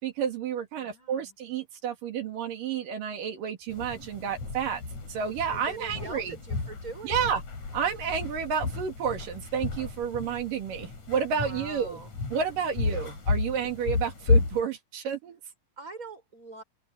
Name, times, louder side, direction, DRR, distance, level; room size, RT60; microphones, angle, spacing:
voice 1, 0.0-4.8 5.1-6.4 7.0-7.4 7.7-12.0 12.3-15.4, right 7 dB, 85° right, 3.9 m, -30 dB
voice 2, 0.8-1.3 5.5-7.4 11.3-12.1 12.8-13.0 15.8-16.6, right 3 dB, 25° right, 6.1 m, -43 dB
sound 1, 3.7-14.6, left 4 dB, 60° left, 6.7 m, -32 dB
open air
omnidirectional pair, 3.8 m